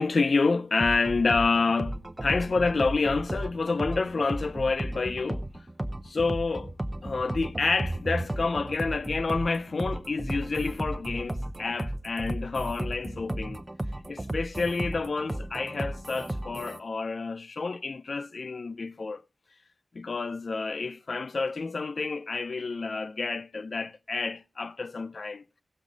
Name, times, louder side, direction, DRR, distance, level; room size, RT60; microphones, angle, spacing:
voice 1, 0.0-5.4 6.0-6.7 7.0-13.6 14.1-19.2 19.9-25.4, left 4 dB, 65° left, 0.5 m, -28 dB
sound 1, 0.8-16.8, right 1 dB, 20° right, 0.8 m, -34 dB
16.5 x 7.1 x 3.9 m
wide cardioid pair, 100°, 0 cm